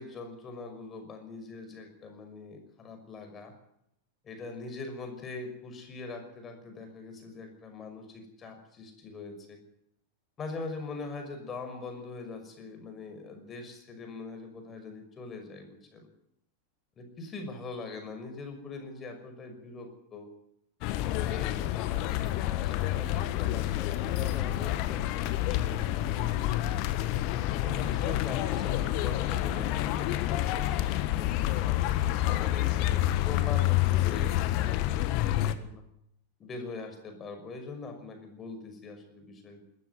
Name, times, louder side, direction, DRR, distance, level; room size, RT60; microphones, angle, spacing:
voice 1, 0.0-3.5 4.2-9.6 10.4-16.1 17.0-20.3 21.0-26.4 27.6-31.7 32.3-35.8 36.4-39.6, left 3 dB, 25° left, 5 dB, 5.9 m, -42 dB
sound 1, 20.8-35.5, left 14 dB, 45° left, 1.5 m, -28 dB
21.0 x 13.5 x 9.6 m, 0.77 s
figure-of-eight pair, 90°, 0 cm